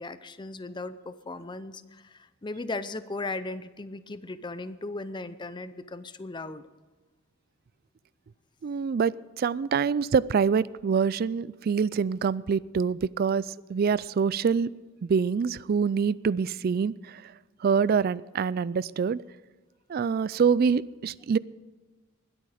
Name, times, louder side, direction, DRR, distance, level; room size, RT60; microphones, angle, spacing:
voice 1, 0.0-6.6, left 2 dB, 20° left, 14 dB, 0.5 m, -37 dB
voice 2, 8.6-14.7 15.0-17.3 17.6-19.2 19.9-21.4, right 6 dB, 45° right, 21 dB, 0.3 m, -25 dB
20.5 x 8.7 x 4.9 m, 1.2 s
head